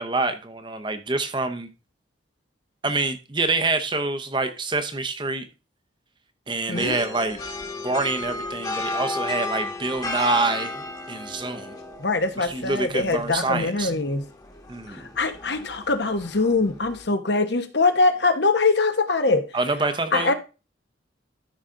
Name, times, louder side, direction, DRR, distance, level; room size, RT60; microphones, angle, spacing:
voice 1, 0.0-1.7 2.8-5.5 6.5-7.4 7.8-11.7 12.4-13.9 14.7-15.1 19.5-20.3, right 3 dB, 25° right, 0.8 m, -26 dB
voice 2, 6.7-7.0 12.0-14.2 14.9-19.5 20.1-20.3, left 3 dB, 65° left, 1.0 m, -23 dB
sound 1, 6.7-17.1, left 2 dB, 20° left, 1.3 m, -34 dB
13.0 x 5.0 x 3.8 m
head